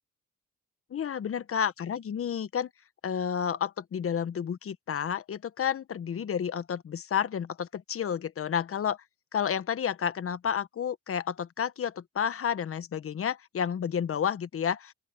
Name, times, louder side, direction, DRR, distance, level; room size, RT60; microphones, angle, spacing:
voice 1, 0.9-2.7 3.0-9.0 9.3-14.9, left 8 dB, 50° left, 1.2 m, -31 dB
open air
cardioid pair, 90°, 30 cm